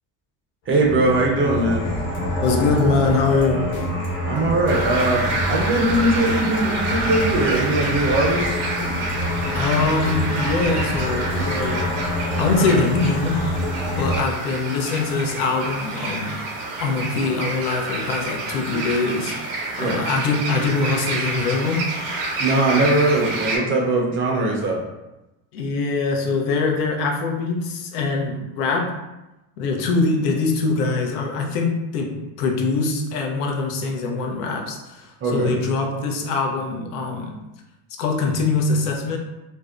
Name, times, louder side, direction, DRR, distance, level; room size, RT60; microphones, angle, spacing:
sound 1, 0.7-14.2, equal, 65° left, 1.2 m, -27 dB
voice 1, 0.7-1.9 4.3-8.6 19.8-20.0 22.4-24.8 35.2-35.5, right 2 dB, 30° right, 0 dB, 0.4 m, -20 dB
sound 2, 1.8-11.9, left 2 dB, 45° left, 0.8 m, -36 dB
voice 2, 2.4-3.7 9.5-11.9 12.2-13.5 13.9-16.5 16.8-21.9 25.5-29.0 29.6-37.4 38.0-39.2, left 3 dB, 90° left, 2 dB, 0.6 m, -23 dB
sound 3, 4.7-23.6, right 2 dB, 80° right, 0.7 m, -28 dB
2.5 x 2.1 x 2.3 m, 0.97 s
supercardioid pair, 100°, 45 cm